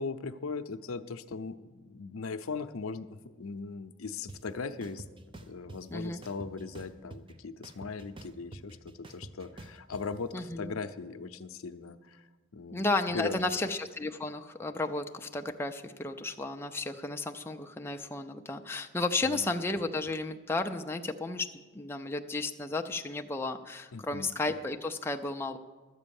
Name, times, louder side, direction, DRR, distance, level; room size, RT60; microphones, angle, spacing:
voice 1, 0.0-5.0 5.5-12.3 12.5-13.7 19.2-19.5 23.9-24.3, left 4 dB, 85° left, 10 dB, 0.6 m, -39 dB
sound 1, 4.3-4.4 4.8-5.8 6.2-7.3 7.6-10.0, right 2 dB, 25° right, 0.7 m, -46 dB
voice 2, 5.9-6.2 10.3-10.7 12.7-25.6, left 2 dB, 10° left, 4 dB, 0.5 m, -33 dB
12.0 x 8.4 x 7.0 m, 1.3 s
head